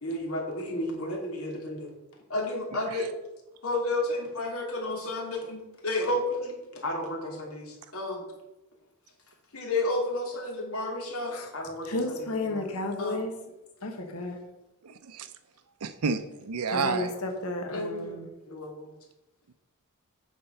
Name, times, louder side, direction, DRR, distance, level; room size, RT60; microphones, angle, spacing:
voice 1, 0.0-1.9 2.3-3.1 3.6-8.2 9.5-12.7 13.0-13.2 17.7-18.9, left 1 dB, 70° left, 0 dB, 2.7 m, -32 dB
voice 2, 11.8-13.3 13.8-14.4 16.7-18.3, left 2 dB, 85° left, 4 dB, 1.3 m, -32 dB
voice 3, 14.8-15.3 15.8-17.1, right 5 dB, 85° right, 10 dB, 0.6 m, -30 dB
8.6 x 5.7 x 5.6 m, 0.98 s
head